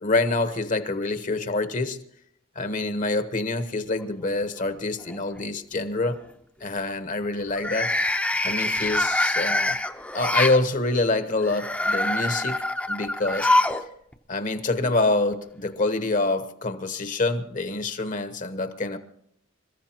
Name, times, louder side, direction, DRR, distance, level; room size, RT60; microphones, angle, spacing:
voice 1, 0.0-2.0 2.5-6.2 6.6-8.0 8.4-9.8 10.1-12.6 12.9-13.5 14.3-19.0, left 2 dB, 40° left, 9 dB, 1.0 m, -26 dB
sound 1, 4.0-4.6 5.0-5.4 7.5-10.6 11.4-13.8 14.1-14.2 15.3-15.4, left 1 dB, 5° left, 0.7 m, -25 dB
27.5 x 14.0 x 2.9 m, 0.70 s
head